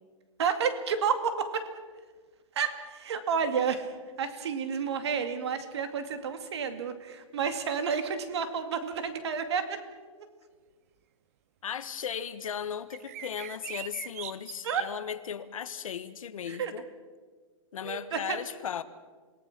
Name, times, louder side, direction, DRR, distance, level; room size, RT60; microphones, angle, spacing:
voice 1, 0.4-1.7 2.5-3.9 4.2-9.8 14.6-14.9 16.5-16.7 17.8-18.4, right 6 dB, 55° right, 2.4 m, -30 dB
voice 2, 11.6-16.8 17.7-18.8, left 8 dB, 85° left, 1.5 m, -36 dB
sound 1, 12.9-14.8, right 12 dB, 25° right, 0.7 m, -41 dB
27.5 x 18.5 x 6.2 m
hypercardioid pair, 180°, 17 cm